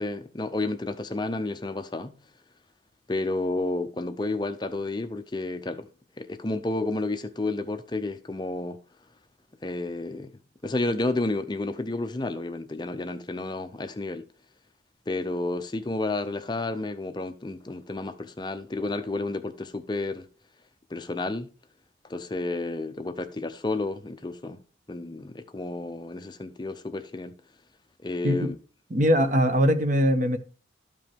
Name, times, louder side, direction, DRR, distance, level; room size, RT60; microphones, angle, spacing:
voice 1, 0.0-2.2 3.1-5.9 6.2-8.8 9.6-10.3 10.6-14.3 15.1-20.3 20.9-21.5 22.1-24.6 24.9-27.3 28.0-28.6, left 2 dB, 25° left, 0.5 m, -31 dB
voice 2, 28.9-30.4, equal, 45° right, 1.2 m, -21 dB
12.5 x 5.3 x 3.5 m
head